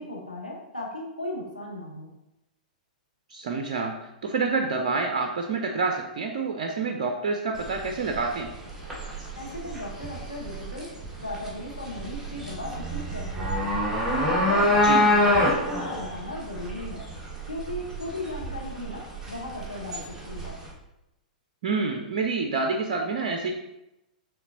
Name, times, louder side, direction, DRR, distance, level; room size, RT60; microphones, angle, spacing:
voice 1, 0.0-2.1 9.4-10.9 11.2-13.9 14.2-17.0 17.5-20.6, left 1 dB, 85° left, -2 dB, 0.9 m, -36 dB
voice 2, 3.3-3.9 4.2-8.5 14.8-15.0 21.6-23.5, right 4 dB, 50° right, 3 dB, 0.5 m, -27 dB
sound 1, 7.6-20.7, left 1 dB, 10° right, 1.2 m, -27 dB
5.8 x 3.5 x 2.6 m, 0.90 s
figure-of-eight pair, 105°, 4 cm